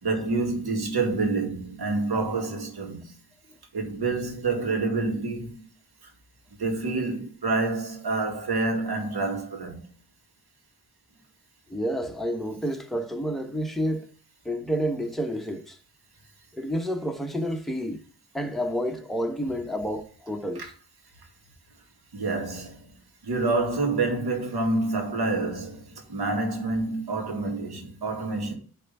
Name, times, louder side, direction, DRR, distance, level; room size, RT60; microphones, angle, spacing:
voice 1, 0.0-3.2 3.7-5.6 6.0-6.1 6.6-9.8 20.6-20.7 22.1-22.9 23.2-28.5, right 3 dB, 85° right, 2.1 m, -28 dB
voice 2, 11.7-14.1 14.4-15.8 16.5-18.0 18.3-20.7, equal, ahead, 1.0 m, -29 dB
9.2 x 3.5 x 5.4 m
wide cardioid pair, 100°, 37 cm